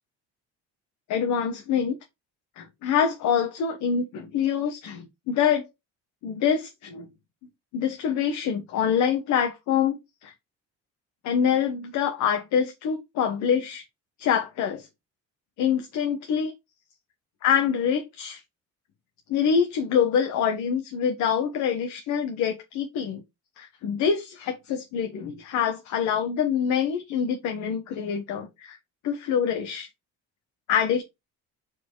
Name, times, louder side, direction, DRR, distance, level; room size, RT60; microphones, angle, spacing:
voice 1, 1.1-1.9 2.6-5.6 6.2-7.1 7.7-10.3 11.2-13.8 14.2-14.9 15.6-16.5 17.4-18.4 19.3-23.2 23.6-28.8 29.0-29.9 30.7-31.0, left 7 dB, 65° left, 1.4 m, -25 dB
4.8 x 4.5 x 4.8 m
cardioid pair, 180°, 30 cm